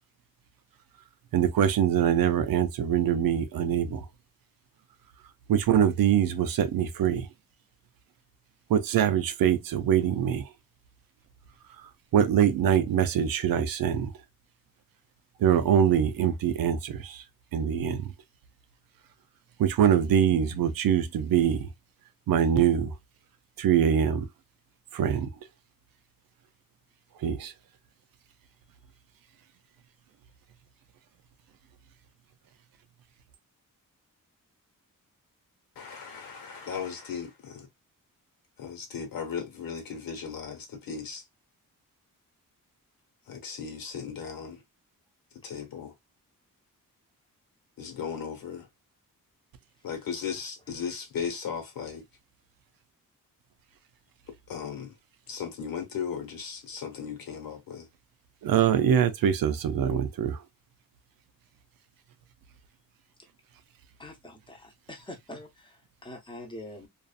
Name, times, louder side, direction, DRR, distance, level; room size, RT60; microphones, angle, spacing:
voice 1, 1.3-4.0 5.5-7.3 8.7-10.5 12.1-14.1 15.4-17.2 17.5-18.1 19.6-21.7 22.3-22.9 23.6-24.3 24.9-25.3 27.2-27.5 58.4-60.4, right 9 dB, 80° right, 0.6 m, -24 dB
voice 2, 35.8-37.7 38.6-41.2 43.3-44.6 45.4-45.9 47.8-48.7 49.8-52.0 54.5-54.9 55.3-57.9, left 7 dB, 80° left, 1.2 m, -36 dB
voice 3, 64.0-66.9, left 1 dB, 15° left, 0.8 m, -44 dB
2.6 x 2.4 x 2.3 m
cardioid pair, 105°, 34 cm